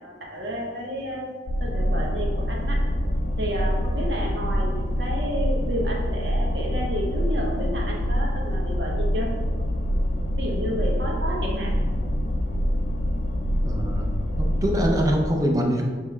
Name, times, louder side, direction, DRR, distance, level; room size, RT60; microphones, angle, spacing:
voice 1, 0.0-1.3 1.6-2.8 3.4-9.4 10.4-11.7, equal, 80° right, -1 dB, 1.0 m, -31 dB
sound 1, 1.5-15.2, equal, 75° left, 0.4 m, -25 dB
voice 2, 13.6-15.8, equal, 20° right, 1 dB, 0.5 m, -24 dB
7.1 x 3.1 x 2.3 m, 1.5 s
head